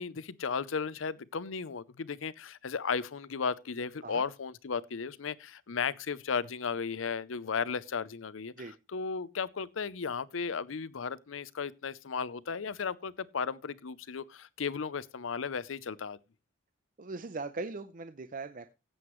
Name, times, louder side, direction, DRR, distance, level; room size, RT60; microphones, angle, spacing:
voice 1, 0.0-8.5 8.9-16.2, left 5 dB, 80° left, 0.6 m, -35 dB
voice 2, 17.0-18.7, right 3 dB, 45° right, 0.7 m, -39 dB
16.0 x 8.0 x 3.1 m
head